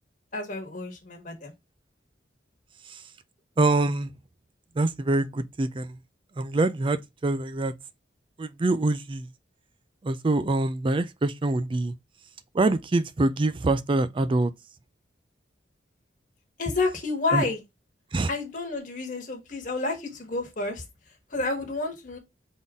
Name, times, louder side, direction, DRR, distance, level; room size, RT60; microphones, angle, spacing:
voice 1, 0.3-1.5 16.6-17.6 18.3-20.8 21.3-22.2, left 3 dB, 45° left, 1.4 m, -30 dB
voice 2, 3.6-4.1 4.8-6.0 6.4-7.7 8.4-9.3 10.0-11.9 12.5-14.5 17.3-17.4 18.1-18.3, right 2 dB, 30° right, 0.4 m, -25 dB
4.1 x 3.7 x 3.5 m
head